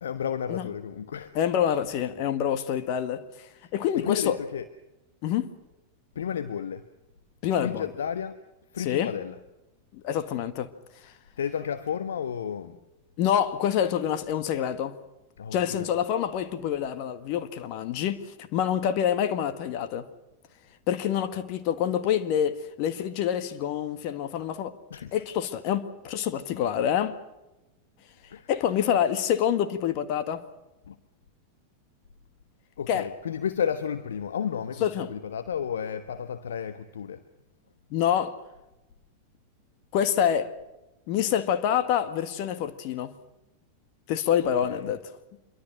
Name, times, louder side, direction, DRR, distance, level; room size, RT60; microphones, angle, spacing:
voice 1, 0.0-1.4 3.6-4.7 6.1-6.9 7.6-8.4 8.7-9.4 11.4-12.8 15.4-15.9 24.9-25.1 28.3-28.5 30.9-31.0 32.8-37.2 44.4-44.9, left 8 dB, 65° left, 1.2 m, -32 dB
voice 2, 1.4-3.2 3.7-4.4 5.2-5.5 7.4-7.8 8.9-9.1 10.0-10.7 13.2-14.9 15.5-20.0 20.9-24.7 25.1-27.2 28.5-30.4 32.9-33.1 34.8-35.1 37.9-38.3 39.9-40.5 41.1-43.1 44.1-45.0, left 9 dB, 45° left, 1.8 m, -26 dB
26.5 x 23.5 x 6.3 m
figure-of-eight pair, 90°, 0 cm